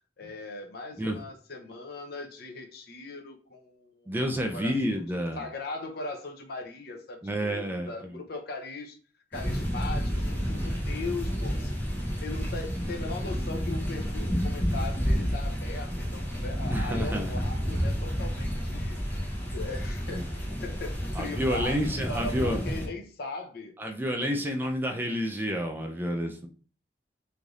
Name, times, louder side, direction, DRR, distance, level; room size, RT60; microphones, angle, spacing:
voice 1, 0.2-9.0 9.3-11.7 12.2-19.0 19.3-20.2 20.6-23.8 24.2-24.5, left 3 dB, 60° left, 4 dB, 0.6 m, -39 dB
voice 2, 4.1-5.4 7.2-8.1 16.7-17.3 20.1-20.2 21.2-22.6 23.8-26.5, equal, 10° right, 3 dB, 0.3 m, -29 dB
sound 1, 9.3-22.9, equal, 10° left, 0.7 m, -30 dB
3.2 x 2.6 x 2.4 m, 0.39 s
head